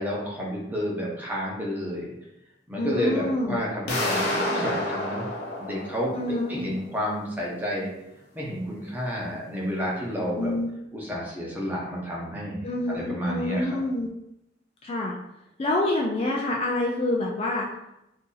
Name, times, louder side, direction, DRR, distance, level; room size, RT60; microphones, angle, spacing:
voice 1, 0.0-2.1 2.7-5.3 5.6-7.9 8.3-10.5 10.9-13.8, equal, 10° right, -5 dB, 0.8 m, -30 dB
voice 2, 2.8-3.6 6.1-6.7 10.4-10.7 12.6-14.1 14.8-15.1 15.6-17.7, left 2 dB, 30° left, -1 dB, 0.3 m, -27 dB
sound 1, 3.9-6.7, left 1 dB, 55° left, 0.7 m, -29 dB
2.7 x 2.6 x 3.8 m, 0.84 s
head